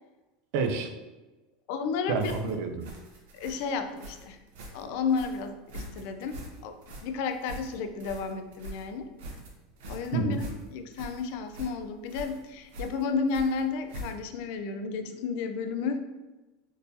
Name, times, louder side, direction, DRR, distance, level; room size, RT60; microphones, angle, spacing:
voice 1, 0.5-0.9 2.1-2.9 10.1-10.4, right 4 dB, 55° right, 6 dB, 0.4 m, -29 dB
voice 2, 1.7-2.3 3.3-4.4 4.7-6.7 7.0-9.1 9.9-10.4 10.7-16.0, left 5 dB, 55° left, 7 dB, 0.3 m, -32 dB
sound 1, 2.2-14.4, right 1 dB, 75° right, 0.9 m, -44 dB
3.6 x 2.6 x 2.8 m, 1.1 s
supercardioid pair, 170°, 0 cm